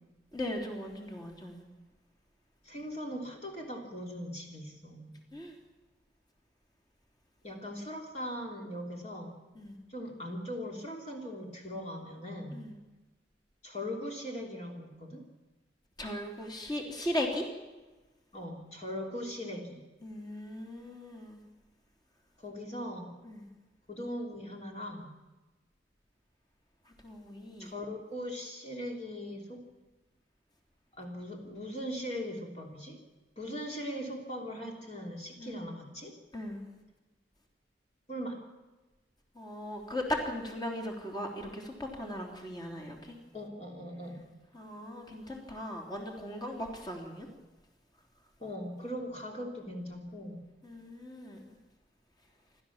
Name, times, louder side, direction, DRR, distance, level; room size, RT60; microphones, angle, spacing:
voice 1, 0.3-1.6 5.3-5.6 9.5-9.8 12.5-12.8 16.0-17.5 20.0-21.4 23.2-23.5 26.8-27.7 35.4-35.6 36.3-36.7 39.3-43.1 44.5-47.3 50.6-51.5, left 1 dB, 25° left, 1 dB, 3.2 m, -38 dB
voice 2, 2.6-5.2 7.4-9.4 9.9-12.6 13.6-15.2 18.3-19.8 22.4-23.1 23.9-25.1 27.6-29.6 30.9-33.0 33.4-36.1 38.1-38.4 43.3-44.3 48.4-50.4, equal, 40° left, 0 dB, 3.1 m, -40 dB
28.5 x 13.0 x 7.3 m, 1.2 s
head